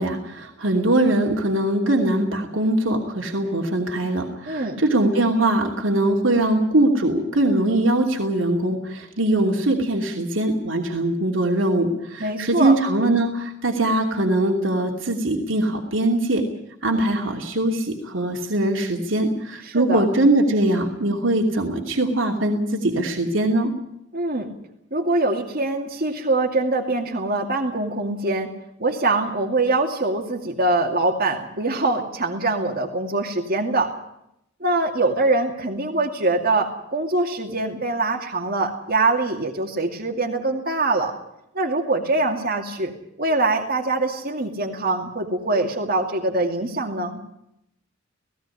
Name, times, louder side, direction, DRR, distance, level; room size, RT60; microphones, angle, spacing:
voice 1, 0.0-16.4 16.8-23.7, right 1 dB, 75° right, 1 dB, 2.8 m, -21 dB
voice 2, 4.5-4.8 12.2-12.7 19.7-20.0 24.1-24.5 24.9-28.5 28.8-33.9 34.6-41.2 41.5-42.9 43.2-47.2, right 2 dB, 50° right, 1 dB, 2.4 m, -23 dB
17.5 x 17.0 x 9.9 m, 0.80 s
head